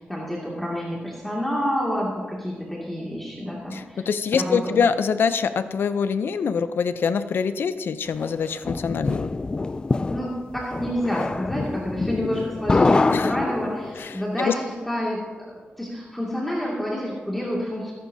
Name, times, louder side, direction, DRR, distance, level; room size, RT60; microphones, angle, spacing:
voice 1, 0.0-4.1 4.3-4.8 10.1-17.9, equal, 5° left, -5 dB, 2.3 m, -29 dB
voice 2, 3.7-9.3 13.1-13.3 14.0-14.5, left 6 dB, 75° left, 11 dB, 0.6 m, -24 dB
sound 1, 8.2-14.1, left 3 dB, 25° left, 0.3 m, -25 dB
22.0 x 11.0 x 2.8 m, 1.4 s
wide cardioid pair, 120°, 4 cm